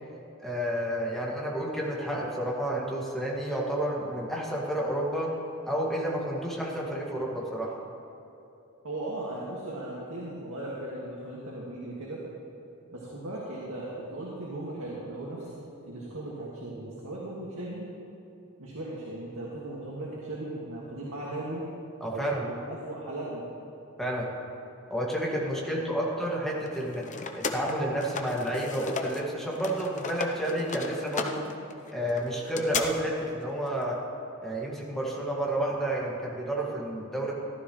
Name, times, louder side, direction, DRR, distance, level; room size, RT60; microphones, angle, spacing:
voice 1, 0.4-5.3 5.7-7.7 22.0-22.4 24.0-24.3 24.9-27.0 27.5-31.4 31.9-34.0 34.4-37.3, right 1 dB, ahead, -4 dB, 2.0 m, -30 dB
voice 2, 8.8-12.2 12.9-17.8 18.6-21.6 22.1-23.5 25.6-26.1, right 1 dB, 80° right, -6 dB, 1.9 m, -37 dB
sound 1, 26.7-29.3 29.5-32.8, left 4 dB, 35° left, 0.7 m, -35 dB
15.0 x 12.5 x 3.2 m, 2.9 s
head